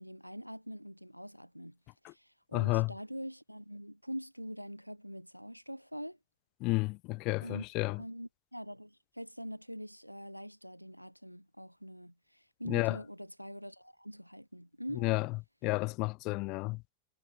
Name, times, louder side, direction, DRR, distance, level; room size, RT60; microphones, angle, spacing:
voice 1, 0.0-1.8 2.1-6.2 7.4-15.1, equal, 90° right, 1.0 m, -44 dB
voice 2, 2.5-2.9 6.6-8.0 12.7-13.0 15.0-15.3 15.6-16.9, left 24 dB, 40° left, 0.9 m, -31 dB
figure-of-eight pair, 90°, 0 cm